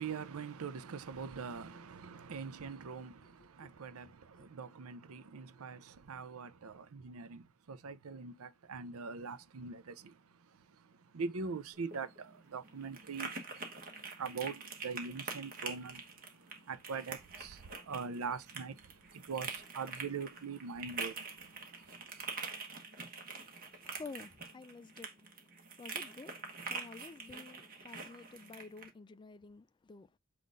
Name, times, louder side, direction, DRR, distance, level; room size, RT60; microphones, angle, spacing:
voice 1, 0.0-10.2 10.8-10.9 11.1-13.6 14.2-16.0 16.4-22.3, right 5 dB, 80° right, 0.6 m, -43 dB
voice 2, 3.4-3.7 23.5-23.6 23.8-25.1 25.8-26.3 26.7-30.2, left 4 dB, 20° left, 0.3 m, -51 dB
sound 1, 11.7-28.9, right 4 dB, 40° right, 1.1 m, -45 dB
5.6 x 2.5 x 3.7 m
head